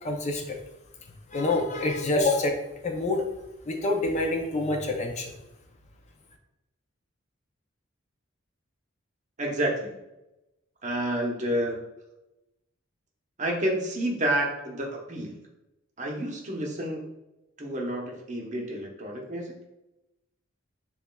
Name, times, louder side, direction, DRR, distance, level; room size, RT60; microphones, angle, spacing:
voice 1, 0.0-0.6 1.3-2.6 2.8-3.2 3.7-5.3, left 2 dB, 35° left, 2 dB, 0.4 m, -26 dB
voice 2, 9.4-10.0 10.8-11.8 13.4-15.4 16.0-17.1 17.6-19.5, right 1 dB, 35° right, 0 dB, 0.8 m, -29 dB
6.9 x 2.4 x 2.2 m, 0.95 s
head